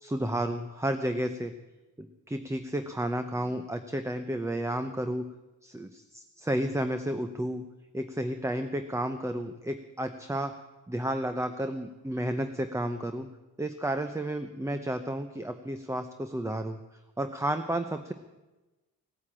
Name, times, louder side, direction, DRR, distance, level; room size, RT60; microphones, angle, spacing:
voice 1, 0.0-1.5 2.0-5.2 5.6-7.6 7.9-10.5 10.9-13.3 13.6-16.8 17.2-18.1, right 1 dB, 10° right, 8 dB, 0.7 m, -32 dB
16.5 x 9.6 x 8.7 m, 1.1 s
wide cardioid pair, 130°, 34 cm